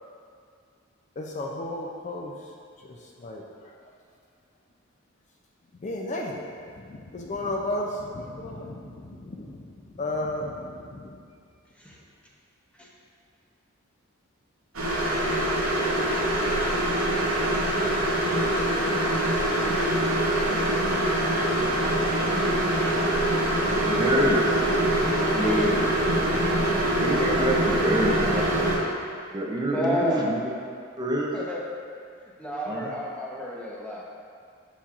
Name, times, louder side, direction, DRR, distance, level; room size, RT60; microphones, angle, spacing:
voice 1, 1.2-2.5 2.8-3.7 5.8-11.2, left 1 dB, 35° left, -1 dB, 0.4 m, -34 dB
sound 1, 14.7-28.8, right 1 dB, 70° right, 1.1 m, -24 dB
voice 2, 20.3-20.6 23.8-24.6 25.3-25.4 27.0-28.7 29.3-30.4 31.0-31.3 32.7-32.9, right 1 dB, 20° right, -3 dB, 0.5 m, -26 dB
voice 3, 25.3-26.0 29.7-30.3 31.3-31.6 32.2-34.1, equal, 5° left, -4 dB, 0.8 m, -30 dB
7.1 x 5.5 x 2.4 m, 2.2 s
head